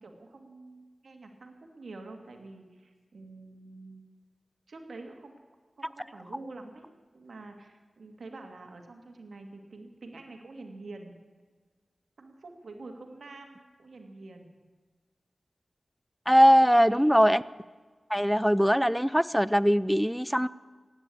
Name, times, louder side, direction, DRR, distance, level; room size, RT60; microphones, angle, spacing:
voice 1, 0.0-4.0 4.7-5.4 5.8-6.9 7.1-11.1 12.2-14.5 16.3-17.2, right 3 dB, 80° right, 4 dB, 2.2 m, -47 dB
voice 2, 16.3-17.4 18.1-20.5, equal, ahead, 18 dB, 0.4 m, -21 dB
16.0 x 10.0 x 8.4 m, 1.4 s
wide cardioid pair, 60°, 0 cm